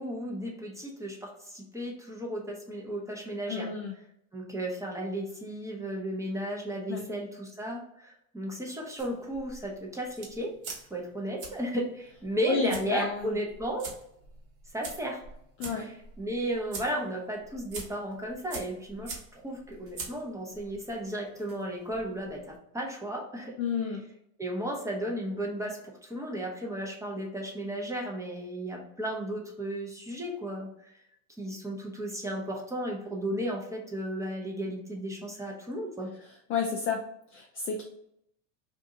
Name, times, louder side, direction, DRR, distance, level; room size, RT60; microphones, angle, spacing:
voice 1, 0.0-3.7 4.3-10.5 10.9-13.9 14.7-15.2 15.6-23.6 24.4-30.9 31.4-36.1, right 1 dB, 5° right, -1 dB, 0.7 m, -34 dB
voice 2, 3.5-3.9 6.9-7.0 12.5-13.4 15.6-15.9 23.6-24.0 36.5-37.0 37.3-37.8, left 5 dB, 30° left, 1 dB, 0.3 m, -30 dB
sound 1, 9.0-22.6, right 4 dB, 45° right, 1.1 m, -46 dB
2.7 x 2.6 x 3.6 m, 0.74 s
supercardioid pair, 110°, 45 cm